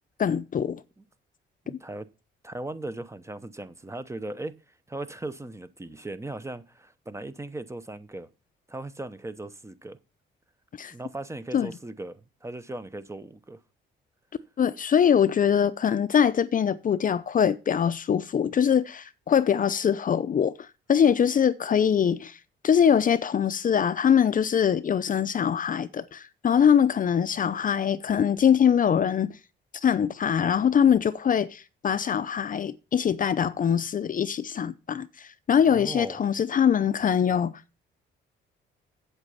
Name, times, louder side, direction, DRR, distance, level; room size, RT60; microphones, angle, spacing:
voice 1, 0.2-0.8 1.7-1.8 10.8-10.9 11.5-11.7 14.6-22.4 22.6-29.3 29.8-37.5, left 8 dB, 45° left, 0.6 m, -23 dB
voice 2, 1.6-2.1 2.4-8.3 8.7-10.0 10.9-13.6 35.7-36.2, right 2 dB, 15° right, 0.8 m, -38 dB
8.1 x 8.1 x 5.6 m
cardioid pair, 90°, 20 cm